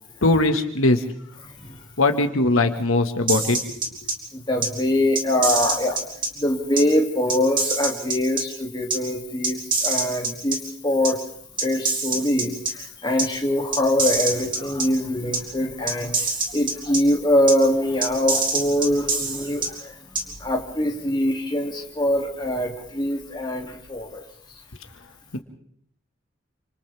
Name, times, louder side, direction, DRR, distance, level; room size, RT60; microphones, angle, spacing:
voice 1, 0.2-1.0 2.0-3.6 25.3-25.4, left 2 dB, 90° left, 6 dB, 1.9 m, -20 dB
voice 2, 1.4-1.8 4.3-6.0 6.4-10.6 10.8-11.2 11.6-24.2, left 1 dB, 20° left, 0 dB, 2.7 m, -23 dB
sound 1, 3.3-4.1 4.6-4.7 5.2-6.3 6.8-6.9 7.3-8.4 8.9-9.0 9.4-10.6 11.0-11.1 11.6-12.7 13.2-13.3 13.7-14.9 15.3-15.4 15.9-17.0 17.5-17.6 18.0-19.7 20.2-20.3, right 3 dB, 25° right, 3.0 m, -24 dB
29.0 x 26.5 x 3.6 m, 0.65 s
head